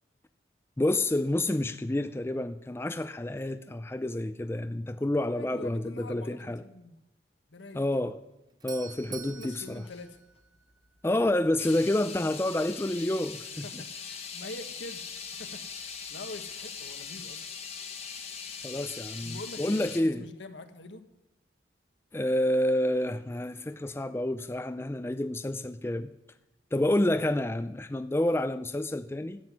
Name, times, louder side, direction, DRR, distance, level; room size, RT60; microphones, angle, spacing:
voice 1, 0.8-6.6 7.7-8.2 8.6-9.8 11.0-13.8 18.6-20.2 22.1-26.1 26.7-29.4, left 1 dB, 15° left, 10 dB, 0.4 m, -29 dB
voice 2, 5.4-7.0 7.5-8.0 9.2-10.2 13.6-15.0 15.4-17.5 19.2-21.0, left 2 dB, 80° left, 8 dB, 1.3 m, -45 dB
Doorbell, 8.2-11.1, right 7 dB, 20° right, 0.8 m, -47 dB
sound 1, 9.0-9.3 9.8-10.0 11.1-11.2 11.6-20.0, left 6 dB, 35° left, 1.3 m, -41 dB
13.0 x 7.9 x 9.4 m, 0.91 s
head